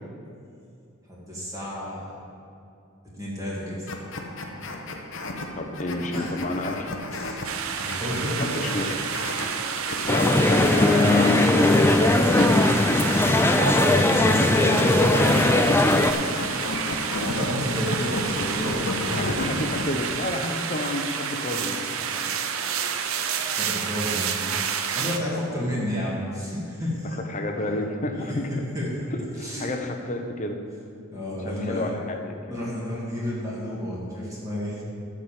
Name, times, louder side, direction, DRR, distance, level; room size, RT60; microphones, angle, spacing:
voice 1, 1.1-2.1 3.1-3.9 6.1-6.3 7.1-8.6 13.2-15.1 17.1-19.1 23.4-24.4 25.0-27.2 28.3-29.0 29.4-29.7 31.1-31.9 32.5-34.8, left 1 dB, 15° right, -6 dB, 2.2 m, -31 dB
sound 1, 3.9-19.9, left 2 dB, 65° left, 1.0 m, -33 dB
voice 2, 5.5-6.9 8.4-9.0 10.1-12.9 14.2-14.7 15.0-16.6 19.1-22.4 27.2-28.5 29.1-30.6 31.4-32.6, left 1 dB, 35° left, 4 dB, 0.9 m, -30 dB
sound 2, 7.4-25.2, right 7 dB, 75° right, 0.7 m, -29 dB
sound 3, 10.1-16.1, left 2 dB, 10° left, 0.4 m, -19 dB
12.5 x 5.0 x 7.5 m, 2.5 s
head